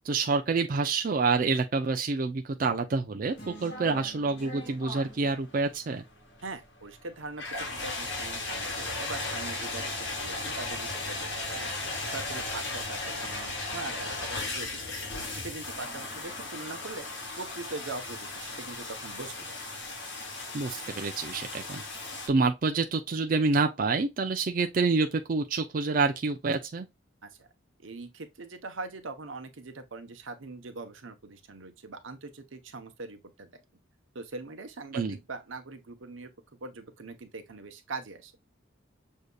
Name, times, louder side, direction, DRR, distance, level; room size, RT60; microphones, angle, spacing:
voice 1, 0.0-6.0 20.5-21.8 22.3-26.9 34.9-35.1, right 4 dB, 45° right, 0.4 m, -27 dB
sound 1, 3.3-22.3, left 2 dB, 65° left, 1.8 m, -37 dB
sound 2, 3.4-7.6, right 2 dB, 45° left, 2.0 m, -53 dB
voice 2, 6.4-11.7 12.0-14.8 15.3-17.1 17.4-19.6 27.2-27.5 27.8-33.5 34.1-36.3 36.6-38.3, right 3 dB, 90° right, 0.9 m, -42 dB
6.4 x 2.7 x 2.3 m
head